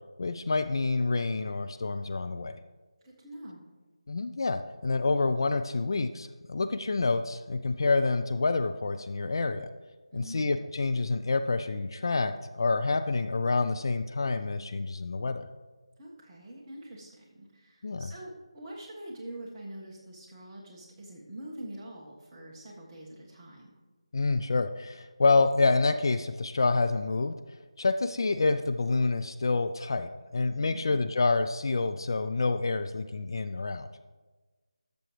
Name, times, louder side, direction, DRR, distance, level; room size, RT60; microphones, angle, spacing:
voice 1, 0.2-2.6 4.1-9.7 10.1-15.5 17.8-18.1 24.1-27.4 27.8-33.9, left 3 dB, 45° left, 9 dB, 0.4 m, -28 dB
voice 2, 3.0-3.6 10.1-10.6 16.0-23.8 30.6-31.0, right 1 dB, 15° right, -5 dB, 1.5 m, -45 dB
13.0 x 6.8 x 3.2 m, 1.3 s
figure-of-eight pair, 165°, 3 cm